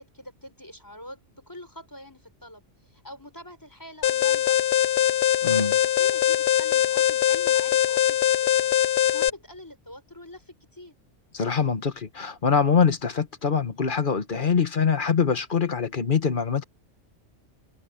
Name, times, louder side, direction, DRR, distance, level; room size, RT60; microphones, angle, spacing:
voice 1, 0.0-5.2 5.5-8.7 9.0-10.9, left 1 dB, 15° left, 5.1 m, -45 dB
Alarm, 4.0-9.3, left 11 dB, 60° left, 0.9 m, -22 dB
voice 2, 5.4-5.8 11.3-16.6, left 6 dB, 45° left, 1.4 m, -24 dB
open air
omnidirectional pair, 1.2 m